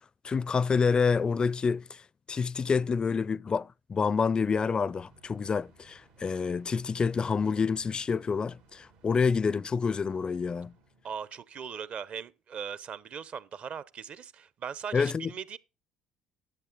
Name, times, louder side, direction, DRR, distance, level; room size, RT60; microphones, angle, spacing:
voice 1, 0.2-2.0 2.3-10.7 14.9-15.3, left 5 dB, 30° left, 0.4 m, -28 dB
sound 1, 4.6-11.5, right 3 dB, 75° right, 2.3 m, -61 dB
voice 2, 11.0-15.6, right 7 dB, 50° right, 0.8 m, -39 dB
11.0 x 8.2 x 3.8 m
hypercardioid pair, 60°, 3 cm